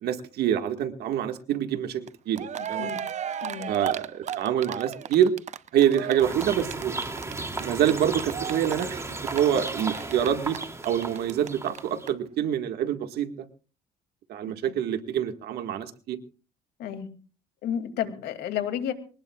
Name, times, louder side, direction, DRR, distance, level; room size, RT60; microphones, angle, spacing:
voice 1, 0.0-2.9 3.7-5.3 5.7-7.0 7.6-9.0 9.3-10.6 10.8-13.3 14.3-16.2, right 10 dB, 70° right, 7 dB, 1.8 m, -26 dB
Cheering, 2.1-2.2 2.3-11.5 11.7-11.8 12.1-12.2, right 9 dB, 45° right, 0.7 m, -35 dB
voice 2, 2.6-3.0 3.4-3.7 14.7-14.8 16.8-17.1 17.6-18.9, left 9 dB, 80° left, 7 dB, 2.6 m, -31 dB
sound 1, 6.2-12.1, right 2 dB, 15° right, 2.8 m, -35 dB
24.0 x 19.0 x 2.4 m, 0.38 s
cardioid pair, 110°, 17 cm